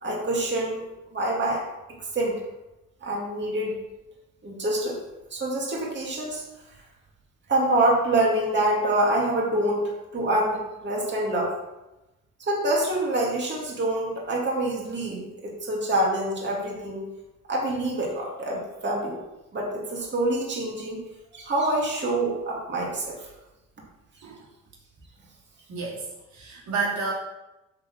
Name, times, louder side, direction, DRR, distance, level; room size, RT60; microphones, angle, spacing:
voice 1, 0.0-1.7 2.1-2.4 3.0-3.8 4.4-5.0 5.3-6.4 7.5-11.5 12.4-17.0 17.5-19.2 19.5-21.0 21.3-23.3, right 1 dB, 35° right, -3 dB, 2.6 m, -26 dB
voice 2, 25.7-26.1 26.3-27.1, right 4 dB, 70° right, -4 dB, 2.6 m, -30 dB
8.5 x 4.2 x 7.1 m, 1.0 s
cardioid pair, 90°, 30 cm